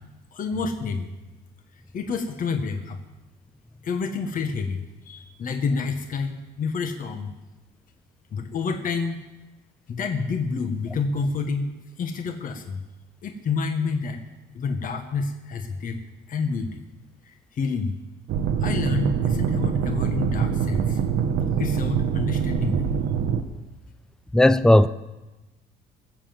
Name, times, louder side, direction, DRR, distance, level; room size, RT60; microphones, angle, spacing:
voice 1, 0.3-1.1 1.9-3.0 3.8-7.3 8.3-9.2 9.9-12.8 13.2-14.2 14.5-16.0 16.3-16.8 17.2-18.0 18.6-21.0 21.6-23.0, left 4 dB, 45° left, 1.4 m, -28 dB
sound 1, 18.3-23.4, right 7 dB, 75° right, 1.2 m, -24 dB
voice 2, 24.3-24.9, left 1 dB, 5° left, 0.5 m, -15 dB
18.5 x 7.0 x 7.7 m
cardioid pair, 95°, 18 cm